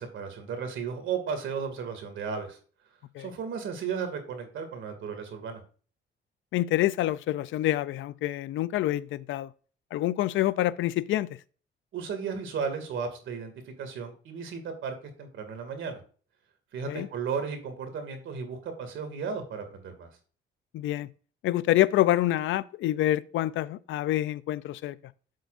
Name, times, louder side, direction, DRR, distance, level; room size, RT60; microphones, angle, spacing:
voice 1, 0.0-2.6 3.2-5.6 11.9-13.5 13.8-16.0 16.7-20.1, right 6 dB, 75° right, 2.3 m, -34 dB
voice 2, 6.5-9.5 9.9-11.4 16.9-17.1 20.7-21.1 21.4-25.0, left 14 dB, 80° left, 0.5 m, -27 dB
8.2 x 7.6 x 2.5 m
cardioid pair, 90°, 20 cm